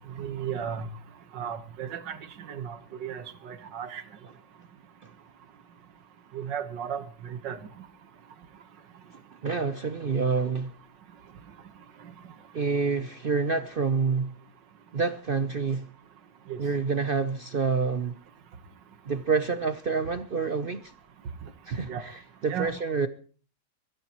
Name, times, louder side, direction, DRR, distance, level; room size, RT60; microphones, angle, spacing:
voice 1, 0.2-0.9 1.3-4.0 6.3-7.6 16.5-16.6 21.9-22.0 22.5-22.7, right 8 dB, 80° right, 1.9 m, -35 dB
voice 2, 9.4-10.7 12.5-14.3 14.9-15.9 16.6-18.2 19.1-20.9 21.7-23.1, right 5 dB, 55° right, 0.6 m, -27 dB
23.0 x 14.0 x 3.0 m
omnidirectional pair, 1.9 m